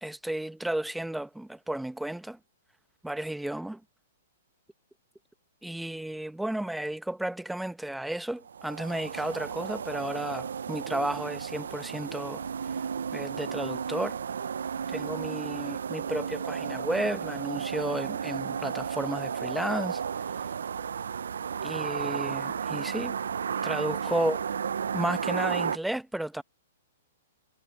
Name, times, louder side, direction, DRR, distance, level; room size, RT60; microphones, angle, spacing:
voice 1, 0.0-2.4 3.0-3.8 5.6-12.4 13.1-14.2 14.9-20.0 21.6-23.2 23.6-24.4 24.9-26.4, right 1 dB, 5° right, 1.3 m, -33 dB
sound 1, 8.5-25.8, right 7 dB, 80° right, 0.8 m, -33 dB
hypercardioid pair, 125°, 0 cm